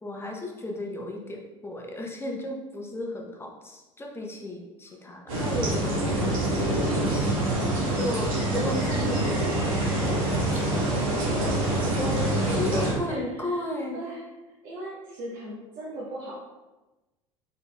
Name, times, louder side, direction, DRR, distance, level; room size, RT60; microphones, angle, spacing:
voice 1, 0.0-7.3 7.5-10.9 12.6-14.0, left 1 dB, 15° left, 0 dB, 0.8 m, -35 dB
sound 1, 5.3-12.9, right 1 dB, 80° right, 1.3 m, -25 dB
voice 2, 12.0-13.6 13.9-14.2 14.6-16.4, right 1 dB, 55° right, -6 dB, 0.9 m, -36 dB
4.0 x 3.9 x 2.3 m, 1.1 s
hypercardioid pair, 75°, 17 cm